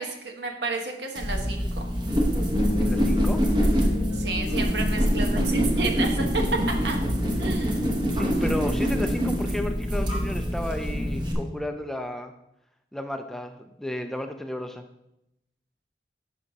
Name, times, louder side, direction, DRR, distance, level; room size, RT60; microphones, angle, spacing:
voice 1, 0.0-1.9 4.1-6.4 6.8-7.0 7.4-7.8, right 3 dB, 70° right, 3 dB, 1.2 m, -31 dB
sound 1, 1.2-11.3, equal, 25° right, 1.0 m, -25 dB
Bass guitar, 2.5-6.6, left 2 dB, 55° right, 3.2 m, -31 dB
voice 2, 2.8-3.4 8.1-12.3 12.9-14.9, left 1 dB, ahead, 6 dB, 0.3 m, -33 dB
10.5 x 6.3 x 2.8 m, 0.85 s
head